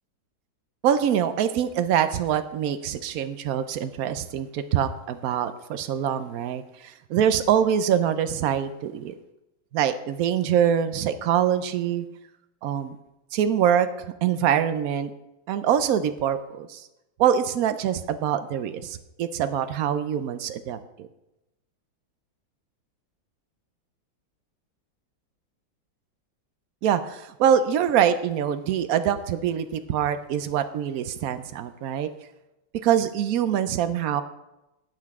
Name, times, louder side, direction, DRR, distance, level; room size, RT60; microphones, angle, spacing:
voice 1, 0.8-9.1 9.7-12.0 12.6-13.0 13.3-15.1 15.5-16.8 17.2-21.1 26.8-32.1 32.8-34.2, right 9 dB, 70° right, 11 dB, 0.8 m, -24 dB
12.0 x 7.9 x 3.6 m, 0.93 s
omnidirectional pair, 2.1 m